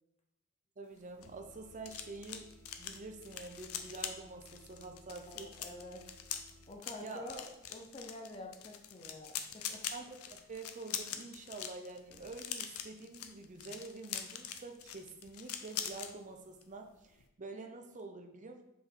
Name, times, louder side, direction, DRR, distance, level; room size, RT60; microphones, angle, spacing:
voice 1, 0.8-2.5 2.8-5.6 7.0-7.3 9.9-18.6, right 3 dB, 35° right, 5 dB, 0.6 m, -47 dB
sound 1, 0.9-16.1 16.4-16.7 17.0-17.2, left 9 dB, 85° left, 0.6 m, -44 dB
sound 2, 1.1-6.8, equal, 80° right, 1.4 m, -60 dB
voice 2, 5.3-6.0 6.7-9.8, left 2 dB, 25° left, 1 dB, 0.6 m, -48 dB
5.2 x 4.8 x 3.8 m, 0.87 s
head